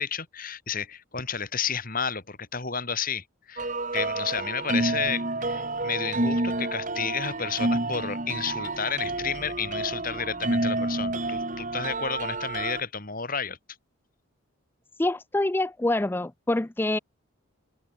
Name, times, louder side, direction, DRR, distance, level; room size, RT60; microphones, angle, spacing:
voice 1, 0.0-13.6, left 6 dB, 40° left, 3.0 m, -31 dB
sound 1, 3.6-12.8, right 2 dB, 35° right, 2.5 m, -29 dB
voice 2, 15.0-17.0, left 2 dB, 10° left, 0.3 m, -26 dB
head